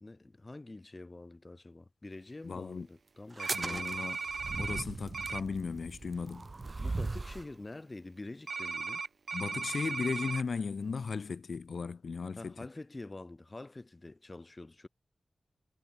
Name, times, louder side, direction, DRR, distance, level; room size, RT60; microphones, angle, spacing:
voice 1, 0.0-4.1 6.8-9.0 12.4-14.9, left 2 dB, 30° left, 2.1 m, -46 dB
voice 2, 2.4-2.9 3.5-4.2 4.6-6.5 9.3-12.5, left 5 dB, 70° left, 1.2 m, -36 dB
sound 1, 3.3-7.5, right 3 dB, 40° right, 0.3 m, -39 dB
sound 2, 3.4-4.8 5.1-5.4 8.5-10.4, right 4 dB, 65° right, 1.2 m, -37 dB
wide cardioid pair, 80°, 0 cm